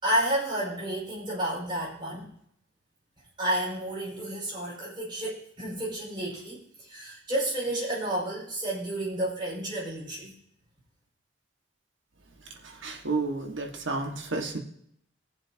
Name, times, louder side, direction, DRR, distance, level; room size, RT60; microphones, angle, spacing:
voice 1, 0.0-2.3 3.4-10.3, right 1 dB, 25° right, -6 dB, 5.4 m, -31 dB
voice 2, 12.5-14.6, right 3 dB, 90° right, 3 dB, 1.8 m, -31 dB
21.0 x 7.3 x 2.9 m, 0.68 s
head